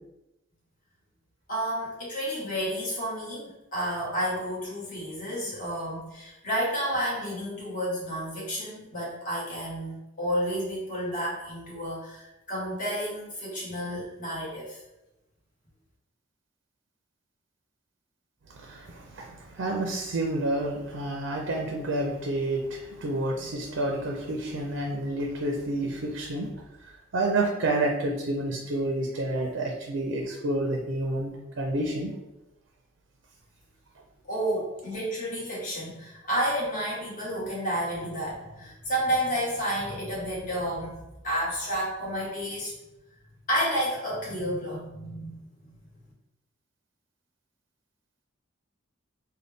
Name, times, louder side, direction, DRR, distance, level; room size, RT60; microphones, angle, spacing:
voice 1, 1.5-14.8 34.3-41.0 41.2-42.7 43.5-45.7, equal, 40° left, -6 dB, 1.3 m, -31 dB
voice 2, 18.6-26.5 27.1-32.1, right 2 dB, 65° right, 1 dB, 0.5 m, -29 dB
3.9 x 2.2 x 3.4 m, 0.95 s
head